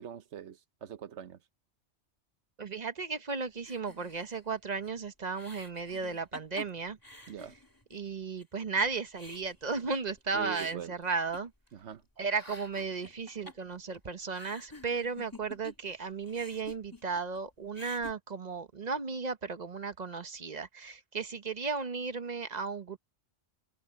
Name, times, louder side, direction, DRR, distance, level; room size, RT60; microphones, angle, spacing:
voice 1, 0.0-1.4 7.3-7.6 10.3-11.0 11.7-12.0, right 8 dB, 80° right, 1.2 m, -42 dB
voice 2, 2.6-7.0 7.9-11.5 12.2-23.0, right 4 dB, 40° right, 1.0 m, -35 dB
sound 1, 3.6-8.1 8.4-8.5 8.8-11.9 12.2-16.0 16.2-17.4 17.7-18.1, left 2 dB, 15° left, 2.7 m, -50 dB
omnidirectional pair, 1.2 m